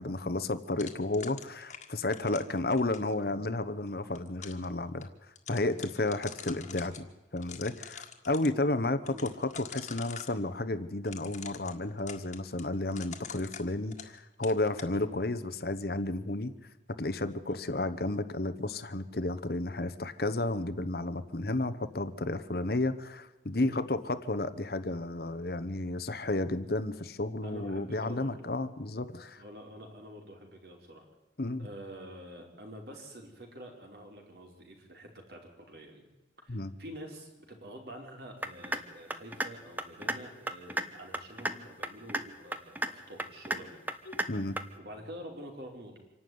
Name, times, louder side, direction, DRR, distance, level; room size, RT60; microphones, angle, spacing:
voice 1, 0.0-5.1 5.5-7.1 7.3-16.5 17.0-29.4 31.4-31.7 36.5-36.7 44.1-44.6, left 2 dB, 55° left, 10 dB, 1.1 m, -32 dB
sound 1, 0.8-3.1 3.9-4.7 5.0-5.1 5.4-7.0 7.4-8.5 9.1-10.4 11.1-14.2 14.4-14.9, left 7 dB, 40° left, 1.8 m, -45 dB
voice 2, 27.4-28.3 29.4-31.0 31.6-36.0 36.4-43.9 44.8-46.0, equal, 60° right, 2 dB, 4.7 m, -47 dB
sound 2, 38.4-38.8 39.1-39.5 39.8-40.2 40.5-40.8 41.1-41.5 41.8-42.2 42.5-42.9 43.2-43.6 43.9-44.3 44.6-44.7, right 1 dB, 10° right, 1.0 m, -32 dB
26.0 x 12.0 x 9.5 m, 1.1 s
head